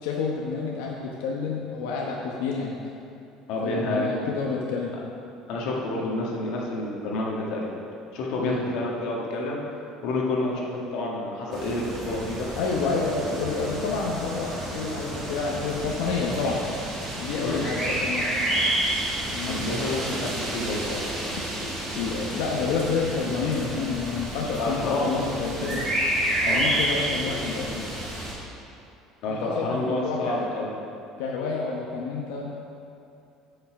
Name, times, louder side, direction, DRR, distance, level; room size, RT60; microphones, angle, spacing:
voice 1, 0.0-2.8 3.6-5.0 8.4-8.6 10.4-10.6 12.6-16.6 17.2-18.3 19.3-19.6 21.9-25.9 26.4-27.9 29.3-30.5 31.2-32.6, left 4 dB, 85° left, -2 dB, 1.0 m, -29 dB
voice 2, 3.5-4.2 5.5-7.8 8.1-9.6 10.0-12.5 17.4-17.7 19.4-21.0 24.6-25.2 26.4-26.9 29.2-30.7, left 2 dB, 55° left, -3 dB, 1.6 m, -29 dB
sound 1, 11.5-28.3, right 1 dB, 20° right, 1.8 m, -30 dB
8.7 x 5.7 x 5.9 m, 2.6 s
cardioid pair, 175°, 0 cm